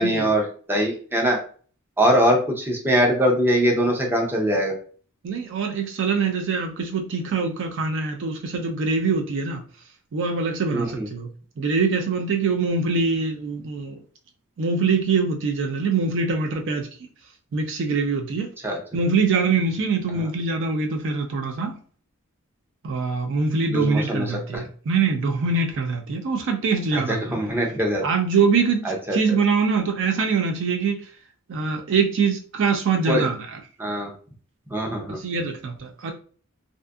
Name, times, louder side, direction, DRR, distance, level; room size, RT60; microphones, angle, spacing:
voice 1, 0.0-1.4 2.0-4.7 10.7-11.1 18.6-18.8 20.2-20.3 23.7-24.6 26.9-28.0 28.8-29.4 33.1-33.3 33.8-34.1 34.7-35.2, equal, 10° right, 0.5 m, -22 dB
voice 2, 5.2-9.6 10.1-11.3 11.6-14.0 14.6-16.9 17.5-18.5 18.9-21.7 22.8-27.4 28.0-31.1 31.5-33.6 35.0-36.1, right 4 dB, 60° right, 0.4 m, -24 dB
2.6 x 2.4 x 2.3 m
head